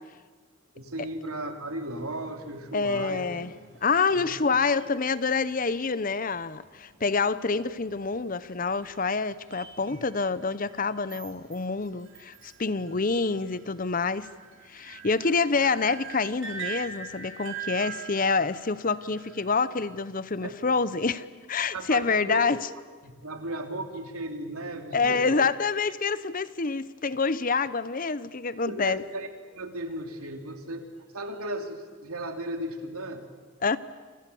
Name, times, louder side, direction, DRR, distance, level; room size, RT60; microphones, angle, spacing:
voice 1, 0.7-3.3 4.1-4.3 4.8-4.9 20.4-20.6 21.7-22.4 23.0-25.4 28.6-29.3 29.5-30.8 31.1-33.2, right 1 dB, 85° right, 3.3 m, -35 dB
sound 1, 1.8-20.0, right 7 dB, 55° right, 3.4 m, -45 dB
voice 2, 2.7-3.5 3.8-14.3 14.7-22.6 24.9-29.0 33.6-33.8, left 4 dB, 40° left, 0.8 m, -27 dB
28.5 x 26.5 x 7.1 m
head